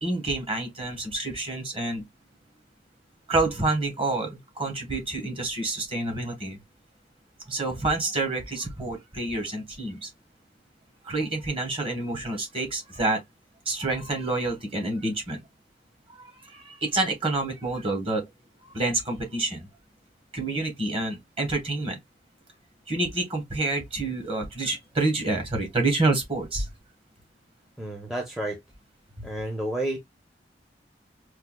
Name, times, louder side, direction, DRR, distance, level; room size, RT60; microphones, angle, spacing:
voice 1, 0.0-2.0 3.3-6.6 7.5-10.1 11.0-13.2 13.7-15.4 16.1-18.3 18.6-19.7 20.3-22.0 22.9-26.7 29.2-29.3, right 2 dB, 30° right, 1.1 m, -28 dB
voice 2, 27.8-28.6 29.2-30.0, right 1 dB, ahead, 0.6 m, -30 dB
4.5 x 2.3 x 2.2 m
head